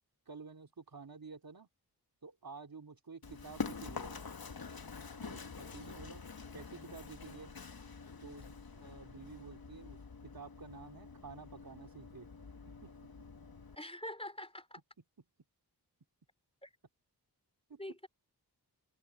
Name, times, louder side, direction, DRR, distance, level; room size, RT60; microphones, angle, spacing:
voice 1, 0.3-1.7 2.2-4.2 5.2-6.2 6.5-7.5 8.2-12.3 12.8-12.9 17.7-17.8, right 4 dB, 60° right, 3.3 m, -51 dB
Run, 3.2-13.8, left 5 dB, 60° left, 1.6 m, -46 dB
voice 2, 5.6-6.1 13.7-14.8 16.6-16.7 17.8-18.1, left 1 dB, 15° left, 4.1 m, -46 dB
cardioid pair, 40°, 41 cm